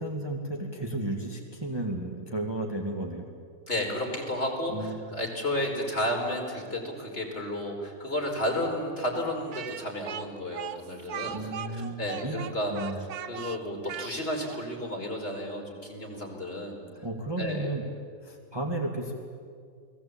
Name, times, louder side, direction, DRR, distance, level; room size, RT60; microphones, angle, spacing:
voice 1, 0.0-3.3 4.7-5.0 11.3-12.4 12.7-13.0 17.0-17.8 18.2-19.1, right 1 dB, 15° right, 1 dB, 2.0 m, -33 dB
voice 2, 3.7-17.0 17.4-17.7, left 1 dB, 35° left, 0 dB, 4.9 m, -32 dB
Speech, 9.5-14.6, right 9 dB, 65° right, 1.4 m, -39 dB
30.0 x 20.0 x 8.7 m, 2.2 s
omnidirectional pair, 1.8 m